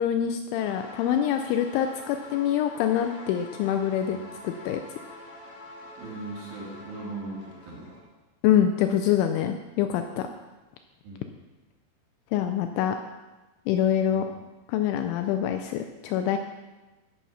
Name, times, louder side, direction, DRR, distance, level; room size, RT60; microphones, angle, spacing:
voice 1, 0.0-4.2 4.4-4.8 8.4-10.3 12.3-13.0 13.7-14.2 14.7-16.4, left 10 dB, 85° left, 6 dB, 2.7 m, -25 dB
sound 1, 0.6-8.0, left 2 dB, 65° left, 1.7 m, -46 dB
voice 2, 6.0-7.9 11.0-11.3 14.1-14.3, right 2 dB, 60° right, -4 dB, 2.9 m, -39 dB
14.0 x 5.7 x 5.5 m, 1.1 s
omnidirectional pair, 5.7 m